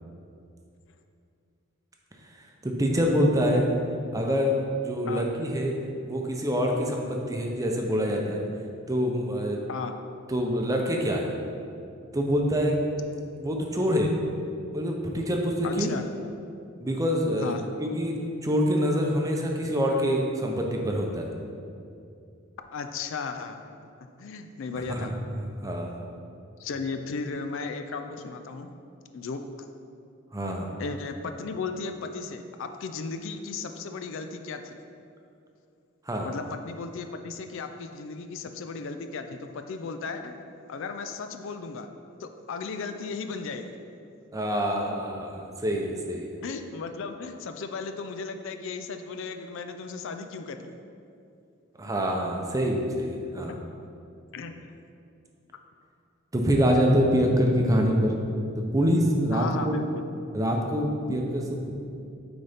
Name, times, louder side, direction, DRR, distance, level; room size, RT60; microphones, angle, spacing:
voice 1, 2.6-3.7 4.1-5.7 6.0-8.4 8.9-9.6 10.3-11.3 12.1-12.8 13.4-14.2 14.7-15.9 16.8-18.1 18.4-21.3 24.9-26.0 30.3-30.7 36.1-36.3 44.3-46.4 51.8-53.5 56.3-58.1 58.7-59.8 60.3-61.7, equal, 15° right, 1 dB, 0.6 m, -25 dB
voice 2, 15.6-16.1 17.4-17.6 22.7-23.6 24.2-25.1 26.6-28.7 29.1-29.4 30.8-34.8 36.2-40.3 40.7-41.9 42.2-43.8 46.4-50.8 53.5-53.6 54.3-54.7 59.3-60.0, left 4 dB, 65° left, 7 dB, 0.4 m, -35 dB
9.3 x 3.9 x 3.5 m, 2.5 s
head